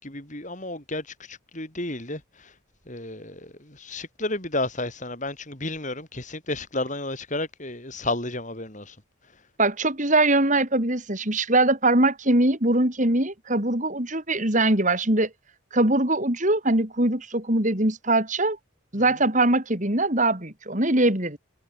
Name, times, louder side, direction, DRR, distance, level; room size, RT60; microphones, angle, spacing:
voice 1, 0.0-2.5 2.9-9.0, left 2 dB, 35° left, 6.5 m, -32 dB
voice 2, 9.6-15.3 15.7-18.6 18.9-21.4, right 2 dB, 35° right, 4.0 m, -22 dB
head